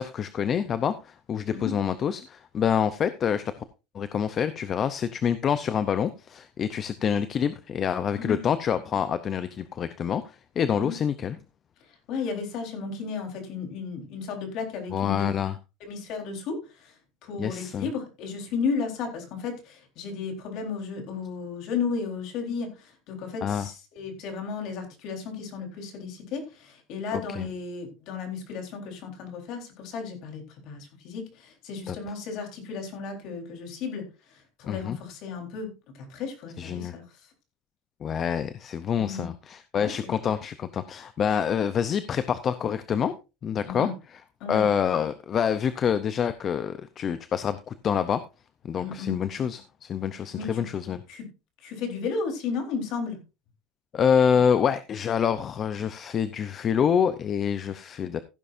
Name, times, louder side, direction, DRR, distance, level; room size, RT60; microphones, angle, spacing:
voice 1, 0.0-3.6 3.9-11.4 14.9-15.6 17.4-17.9 23.4-23.7 27.1-27.5 31.9-32.0 34.7-35.0 36.6-36.9 38.0-43.1 43.4-43.9 44.5-48.2 48.6-51.0 53.9-58.2, left 8 dB, 25° left, 12 dB, 0.6 m, -26 dB
voice 2, 12.1-15.3 15.8-16.9 17.2-34.0 34.6-37.0 39.0-39.3 39.8-39.9 43.6-43.9 44.4-44.7 48.8-49.2 50.3-50.7 51.1-51.3 51.6-53.2, left 5 dB, 45° left, 3 dB, 4.0 m, -34 dB
15.5 x 10.5 x 2.6 m, 0.28 s
cardioid pair, 175°, 0 cm